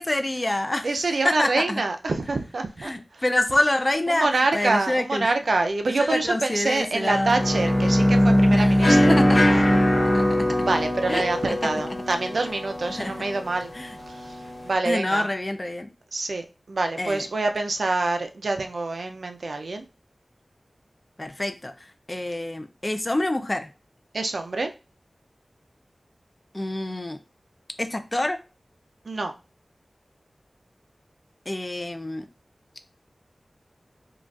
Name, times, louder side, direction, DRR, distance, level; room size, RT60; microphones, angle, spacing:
voice 1, 0.0-0.9 1.2-1.8 2.8-5.3 6.0-7.4 8.5-8.8 9.1-9.4 10.1-10.3 11.1-11.7 12.9-13.1 13.7-14.0 14.8-15.9 17.0-17.3 21.2-23.7 26.5-27.2 27.8-28.4 31.5-32.3, left 1 dB, 30° left, 8 dB, 0.4 m, -27 dB
voice 2, 0.8-3.2 4.1-9.2 10.6-13.7 14.1-15.3 16.1-19.8 24.1-24.7 29.1-29.3, right 3 dB, 80° right, 5 dB, 0.4 m, -26 dB
Bowed string instrument, 7.0-11.1, equal, 40° right, 1.4 m, -21 dB
sound 1, 7.4-14.7, left 1 dB, 85° left, 1.0 m, -26 dB
3.7 x 2.3 x 2.3 m, 0.30 s
wide cardioid pair, 75°, 0 cm